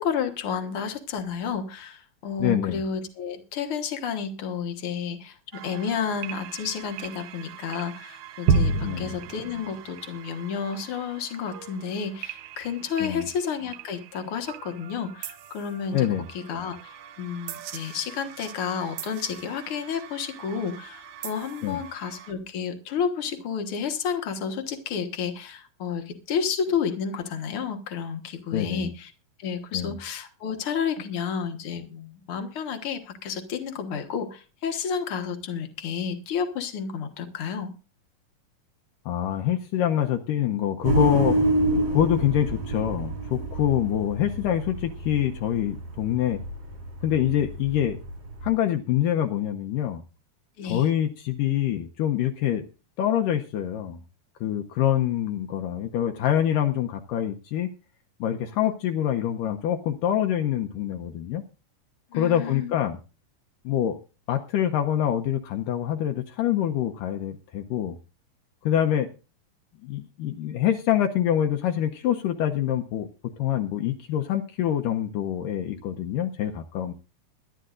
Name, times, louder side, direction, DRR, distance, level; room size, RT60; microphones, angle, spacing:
voice 1, 0.0-16.1 16.3-29.1 29.4-37.7 50.6-50.9 62.1-62.7, left 6 dB, 60° left, 6 dB, 1.5 m, -31 dB
voice 2, 2.4-2.8 8.8-9.1 13.0-13.3 15.9-16.3 21.6-21.8 28.5-28.9 29.7-30.0 39.1-41.4 41.9-46.4 47.0-48.0 48.4-50.0 50.6-52.7 53.0-54.0 54.4-57.7 58.2-61.4 62.1-63.0 63.7-64.0 64.3-68.0 68.7-69.1 69.8-76.9, left 10 dB, 75° left, 4 dB, 2.2 m, -25 dB
sound 1, 5.5-22.3, right 5 dB, 70° right, 2.0 m, -34 dB
sound 2, 40.8-48.5, right 1 dB, 55° right, 4.4 m, -28 dB
22.5 x 11.5 x 2.5 m, 0.33 s
omnidirectional pair, 4.3 m